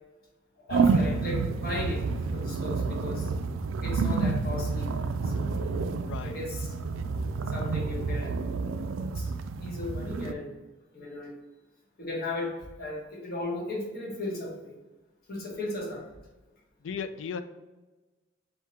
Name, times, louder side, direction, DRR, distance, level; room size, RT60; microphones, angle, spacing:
voice 1, 0.6-2.0 2.3-3.3 3.8-4.9 5.2-5.7 6.2-6.7 7.5-8.4 9.1-9.3 9.6-10.6 10.9-11.3 12.0-14.8 15.3-16.1, left 2 dB, 50° left, -2 dB, 1.1 m, -36 dB
sound 1, 0.7-10.3, right 4 dB, 75° right, 0.3 m, -29 dB
voice 2, 6.0-6.4 16.8-17.4, left 6 dB, 70° left, 10 dB, 0.4 m, -36 dB
3.6 x 2.7 x 4.3 m, 1.2 s
head